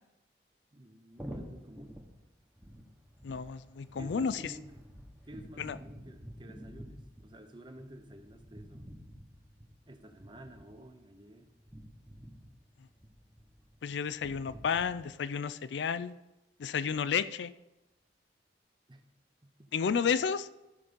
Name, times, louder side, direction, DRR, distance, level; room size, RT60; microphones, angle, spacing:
voice 1, 0.7-2.0 4.0-4.8 5.2-8.9 9.9-11.5 18.9-19.0 19.4-19.7 20.0-20.1, right 1 dB, 25° right, 6 dB, 0.9 m, -51 dB
sound 1, 1.1-15.0, equal, 10° right, 1.2 m, -50 dB
voice 2, 3.2-4.5 5.6-5.8 13.8-16.2 16.6-17.5 19.7-20.5, left 6 dB, 75° left, 15 dB, 0.4 m, -31 dB
13.5 x 5.3 x 5.2 m, 0.99 s
head